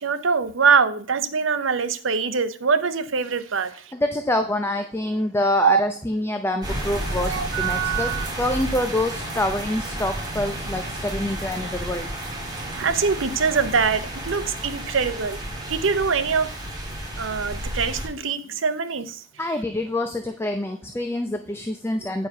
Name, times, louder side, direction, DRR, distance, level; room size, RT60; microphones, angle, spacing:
voice 1, 0.0-3.7 5.6-5.8 7.2-8.3 12.7-15.4 15.7-16.5 17.2-19.2, right 5 dB, 90° right, 0.7 m, -23 dB
voice 2, 3.9-8.1 8.4-12.1 19.4-22.3, left 1 dB, 15° left, 0.6 m, -26 dB
sound 1, 6.6-18.1, right 1 dB, 20° right, 1.9 m, -32 dB
9.4 x 4.7 x 5.4 m
head